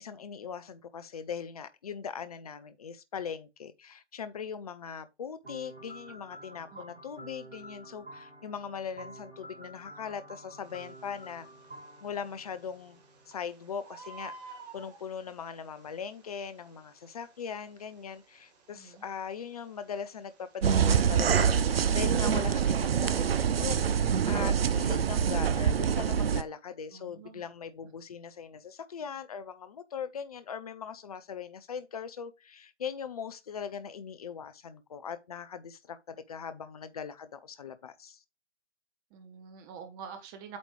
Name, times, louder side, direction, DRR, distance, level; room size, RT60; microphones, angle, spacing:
voice 1, 0.0-11.5 12.0-38.2, left 7 dB, 35° left, 0.5 m, -40 dB
sound 1, 5.4-13.3, right 1 dB, 75° right, 3.6 m, -49 dB
voice 2, 6.7-7.0 18.7-19.0 26.9-27.4 39.1-40.6, right 7 dB, 15° right, 0.8 m, -47 dB
Bird, 10.6-22.5, right 3 dB, 35° right, 1.9 m, -54 dB
sound 2, 20.6-26.4, right 7 dB, 55° right, 0.6 m, -25 dB
8.3 x 3.0 x 4.8 m
figure-of-eight pair, 130°, 35 cm